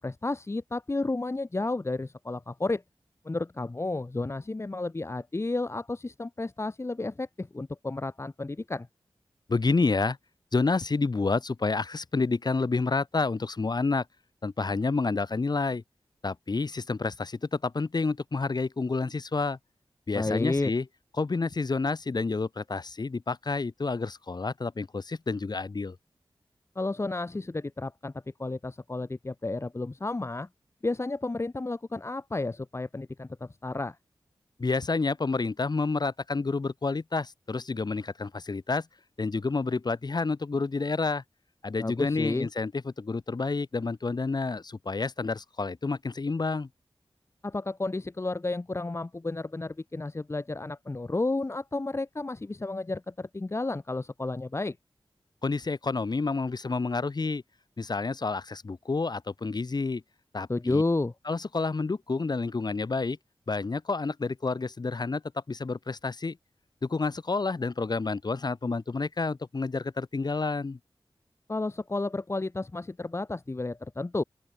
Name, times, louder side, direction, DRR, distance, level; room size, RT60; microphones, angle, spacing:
voice 1, 0.0-2.8 3.2-8.9 20.1-20.7 26.7-28.1 28.4-30.5 30.8-34.0 41.8-42.5 47.4-54.8 60.5-61.1 71.5-74.2, left 2 dB, 30° left, 1.6 m, -31 dB
voice 2, 9.5-10.2 10.5-14.0 14.4-15.8 16.2-19.6 20.1-20.8 21.2-25.9 34.6-38.9 39.2-41.2 41.6-46.7 55.4-57.4 57.8-60.0 60.3-60.8 61.2-63.2 63.5-65.2 65.5-66.4 66.8-70.8, left 3 dB, 50° left, 6.6 m, -29 dB
open air
wide cardioid pair, 100°, 9 cm